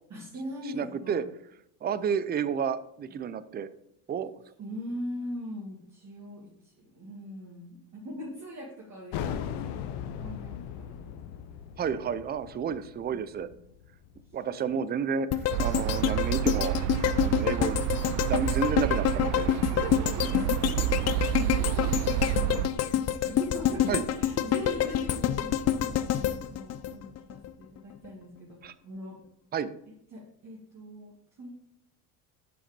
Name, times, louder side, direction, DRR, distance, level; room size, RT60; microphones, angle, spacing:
voice 1, 0.1-1.3 3.1-3.2 4.6-9.9 10.2-10.5 10.8-11.3 13.5-13.6 19.7-22.9 23.2-28.6 28.8-29.2 30.1-31.5, equal, 40° right, -5 dB, 2.3 m, -41 dB
voice 2, 0.7-1.2 1.8-3.7 4.1-4.3 11.8-13.5 14.3-16.8 17.2-17.8 18.3-19.5 20.8-20.9 23.9-24.0 28.6-28.7 29.5-29.7, right 7 dB, 25° right, 14 dB, 0.5 m, -31 dB
sound 1, 9.1-14.4, left 9 dB, 65° left, 0.8 m, -38 dB
sound 2, 15.3-27.5 27.9-28.0, left 10 dB, 35° left, 0.6 m, -27 dB
sound 3, 15.5-22.7, right 14 dB, 80° right, 0.5 m, -29 dB
7.2 x 5.7 x 5.2 m, 0.76 s
supercardioid pair, 90°, 44 cm